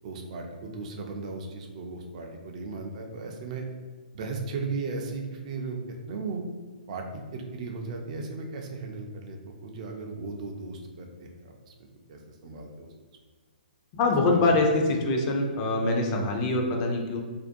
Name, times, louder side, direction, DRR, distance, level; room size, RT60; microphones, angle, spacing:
voice 1, 0.0-3.6 4.1-6.4 6.9-11.7 12.1-12.9 14.3-14.6, right 3 dB, 45° right, 2 dB, 0.3 m, -36 dB
voice 2, 13.9-17.2, left 2 dB, 30° left, 1 dB, 0.4 m, -24 dB
2.5 x 2.2 x 2.5 m, 1.4 s
hypercardioid pair, 140°, 5 cm